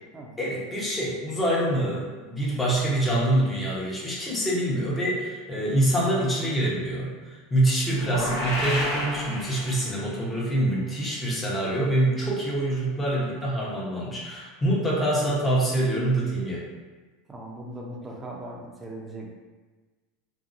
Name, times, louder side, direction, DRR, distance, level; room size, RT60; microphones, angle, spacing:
voice 1, 0.4-16.6, right 1 dB, 15° left, -5 dB, 0.8 m, -25 dB
sound 1, 7.9-10.1, left 1 dB, 65° left, 1.0 m, -30 dB
voice 2, 17.3-19.3, right 1 dB, 20° right, -1 dB, 0.5 m, -39 dB
2.6 x 2.2 x 2.5 m, 1.3 s
hypercardioid pair, 105°, 0 cm